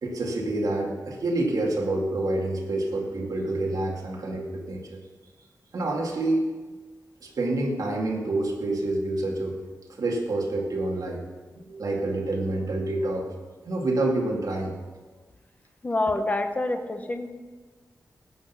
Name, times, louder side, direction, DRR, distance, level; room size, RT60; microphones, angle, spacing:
voice 1, 0.0-5.0 5.7-6.4 7.2-9.6 9.9-11.2 11.7-13.3 13.6-14.7, right 2 dB, 65° right, -2 dB, 2.3 m, -27 dB
voice 2, 15.8-17.3, left 2 dB, 25° left, 7 dB, 1.0 m, -27 dB
17.5 x 6.3 x 5.8 m, 1.4 s
wide cardioid pair, 150°, 7 cm